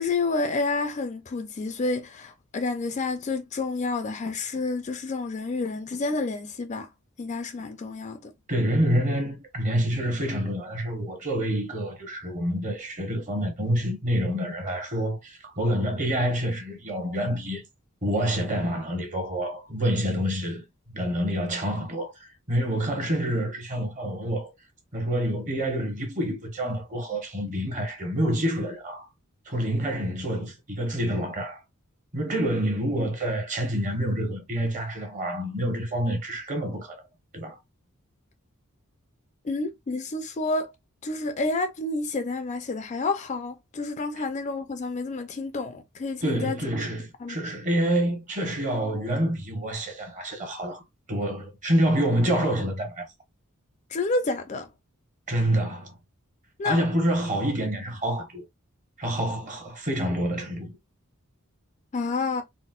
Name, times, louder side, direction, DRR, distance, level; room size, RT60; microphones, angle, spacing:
voice 1, 0.0-6.9 7.2-8.3 39.4-40.7 41.0-46.6 47.2-47.4 53.9-54.7 56.6-56.8 61.9-62.4, left 3 dB, 35° left, 0.4 m, -29 dB
voice 2, 8.5-17.6 18.0-24.5 24.9-29.1 29.5-31.6 32.1-37.0 37.3-37.6 44.2-44.3 46.2-50.8 51.1-53.1 55.3-55.9 56.6-58.4 59.0-60.8, equal, 35° right, 1.0 m, -27 dB
4.1 x 2.0 x 2.3 m
head